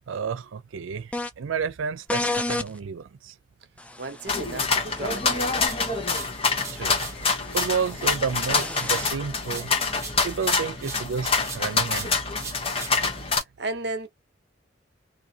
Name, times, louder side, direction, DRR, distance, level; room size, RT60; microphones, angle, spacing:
voice 1, 0.1-3.3 6.7-7.1 7.5-9.7 10.2-12.1, right 6 dB, 90° right, 0.4 m, -31 dB
sound 1, 1.1-1.3 2.1-2.7 3.8-9.1, left 2 dB, 5° left, 0.4 m, -34 dB
voice 2, 4.0-5.6 13.6-14.1, right 2 dB, 55° right, 0.8 m, -34 dB
sound 2, 4.3-13.4, left 4 dB, 30° left, 0.9 m, -26 dB
sound 3, 5.7-7.2 7.5-11.1 11.4-13.4, right 4 dB, 15° right, 1.1 m, -41 dB
3.6 x 2.7 x 2.8 m
head